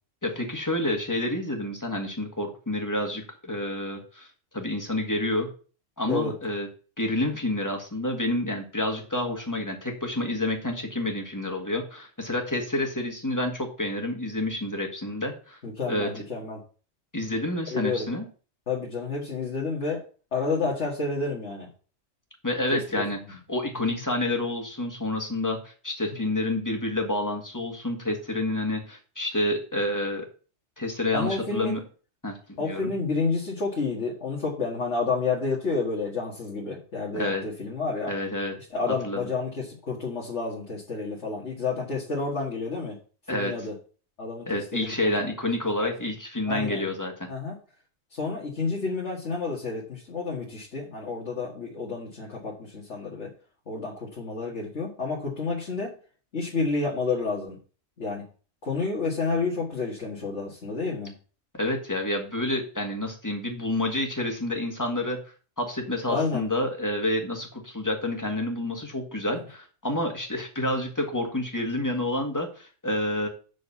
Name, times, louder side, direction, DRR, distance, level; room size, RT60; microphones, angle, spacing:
voice 1, 0.2-4.3 4.5-5.5 6.0-6.7 7.0-15.6 15.9-16.2 17.1-18.3 22.4-30.3 30.8-31.8 32.2-32.9 37.1-37.4 38.1-38.5 38.9-39.3 43.3-43.7 44.5-47.3 61.5-73.3, left 1 dB, 15° left, 3 dB, 1.8 m, -29 dB
voice 2, 15.6-16.6 17.7-18.1 18.7-20.0 20.3-21.7 23.9-24.0 26.1-26.3 31.1-31.8 32.6-38.1 38.7-43.0 43.3-43.7 44.2-44.5 44.7-45.3 45.8-45.9 46.5-46.9 47.3-47.6 48.1-53.3 53.7-55.9 56.3-57.6 58.0-58.3 58.6-61.1 66.1-66.5, left 4 dB, 65° left, -5 dB, 2.2 m, -30 dB
6.4 x 5.3 x 7.1 m, 0.38 s
omnidirectional pair, 1.3 m